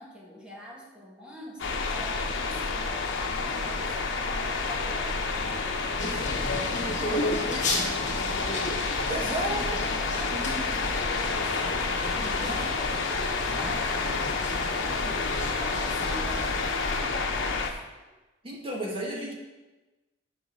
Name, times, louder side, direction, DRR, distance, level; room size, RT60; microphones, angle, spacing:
voice 1, 0.0-12.9 13.4-18.1, equal, 5° right, -3 dB, 1.6 m, -46 dB
sound 1, 1.6-17.7, left 4 dB, 90° left, 0.9 m, -29 dB
sound 2, 6.0-17.0, left 1 dB, 40° left, 1.8 m, -34 dB
voice 2, 7.0-7.3 9.1-9.8 12.4-12.5 18.4-19.3, right 1 dB, 30° right, -2 dB, 1.5 m, -33 dB
8.7 x 4.2 x 6.5 m, 1.1 s
head